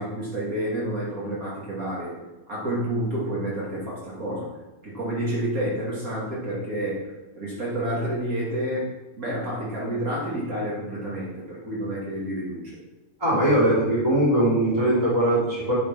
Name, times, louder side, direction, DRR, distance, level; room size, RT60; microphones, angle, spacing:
voice 1, 0.0-2.1 2.5-4.5 4.8-12.8 13.3-13.4, right 1 dB, 65° right, -7 dB, 0.8 m, -29 dB
voice 2, 13.2-15.7, right 1 dB, 5° right, -6 dB, 2.7 m, -21 dB
10.0 x 6.2 x 5.9 m, 1.1 s
omnidirectional pair, 5.2 m